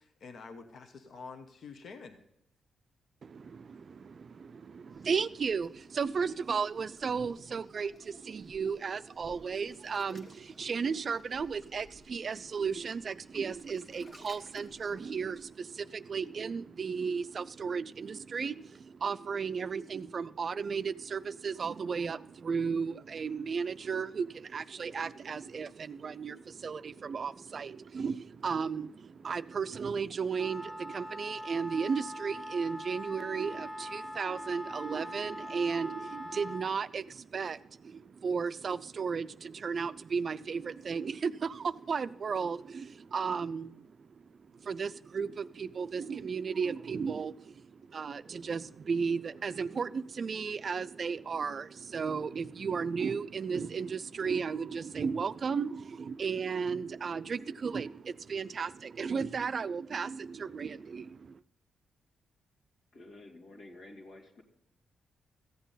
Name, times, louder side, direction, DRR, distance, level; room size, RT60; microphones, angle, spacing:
voice 1, 0.0-2.2, left 4 dB, 65° left, 1.0 m, -47 dB
voice 2, 3.2-61.4, right 5 dB, 45° right, 0.4 m, -34 dB
Waves surf, 4.9-15.5, left 2 dB, 45° left, 1.6 m, -59 dB
Wind instrument woodwind instrument, 30.4-36.7, equal, 5° left, 0.6 m, -42 dB
voice 3, 62.9-64.4, left 2 dB, 85° left, 2.4 m, -50 dB
14.5 x 8.2 x 4.0 m
cardioid pair, 95°, 0 cm